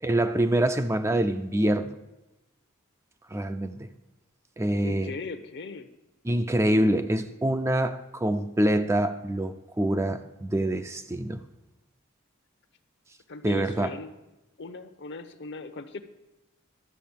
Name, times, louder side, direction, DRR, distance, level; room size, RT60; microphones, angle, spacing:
voice 1, 0.0-2.0 3.3-3.9 4.6-5.1 6.2-11.4 13.4-13.9, right 1 dB, 15° right, 0.5 m, -25 dB
voice 2, 4.8-5.9 13.3-14.1 14.6-16.0, left 3 dB, 55° left, 0.9 m, -38 dB
12.0 x 7.2 x 7.2 m
head